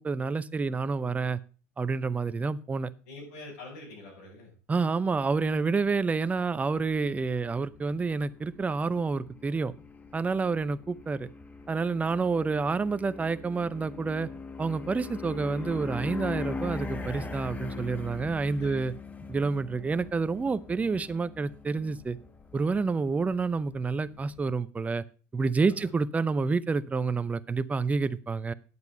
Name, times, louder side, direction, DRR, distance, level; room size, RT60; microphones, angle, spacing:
voice 1, 0.0-1.4 1.8-2.9 4.7-9.7 10.1-11.3 11.7-14.3 14.6-18.9 19.3-22.2 22.5-25.0 25.3-28.5, right 4 dB, 20° right, 15 dB, 0.7 m, -28 dB
voice 2, 3.0-4.5 18.6-18.9 25.7-25.9, left 2 dB, 75° left, -7 dB, 6.7 m, -45 dB
sound 1, 5.1-24.4, left 4 dB, 20° left, 1.2 m, -42 dB
9.6 x 8.1 x 5.4 m, 0.36 s
hypercardioid pair, 90°, 8 cm